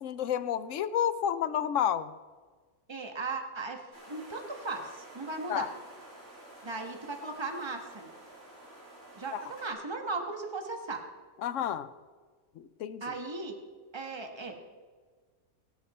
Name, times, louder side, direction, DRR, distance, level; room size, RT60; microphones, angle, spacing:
voice 1, 0.0-2.1 5.5-5.7 9.3-9.4 11.4-11.9 12.6-13.0, left 9 dB, 65° left, 13 dB, 0.9 m, -30 dB
voice 2, 2.9-5.7 6.6-8.1 9.1-11.0 13.0-13.6 13.9-14.6, right 3 dB, 20° right, 4 dB, 1.4 m, -37 dB
sound 1, 3.9-9.7, right 1 dB, 65° right, 5.9 m, -51 dB
21.5 x 8.8 x 4.2 m, 1.5 s
omnidirectional pair, 1.5 m